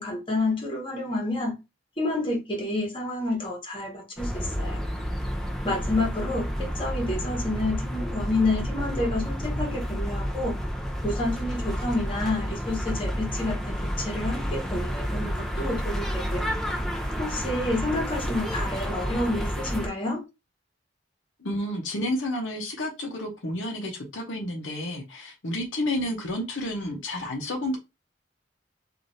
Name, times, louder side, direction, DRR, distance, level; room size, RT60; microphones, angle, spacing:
voice 1, 0.0-1.5 2.0-4.8 5.6-10.5 11.0-16.5 17.2-20.2, left 2 dB, 30° left, 1.2 m, -29 dB
sound 1, 4.2-19.9, equal, ahead, 0.6 m, -30 dB
voice 2, 21.4-27.8, left 1 dB, 85° left, 0.8 m, -30 dB
3.1 x 2.6 x 2.6 m
head